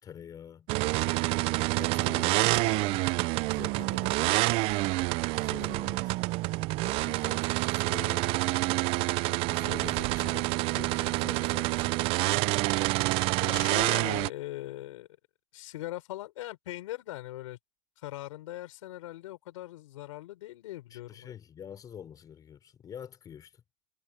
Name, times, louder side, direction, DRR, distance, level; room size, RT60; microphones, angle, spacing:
voice 1, 0.0-0.7 1.8-3.1 3.4-4.6 5.3-6.2 6.8-8.4 9.5-12.2 20.9-23.6, left 8 dB, 20° left, 4.1 m, -46 dB
sound 1, 0.7-14.3, right 22 dB, 35° right, 0.4 m, -27 dB
voice 2, 13.4-15.1 15.5-17.6 18.0-21.3, left 16 dB, 75° left, 4.4 m, -40 dB
supercardioid pair, 150°, 16 cm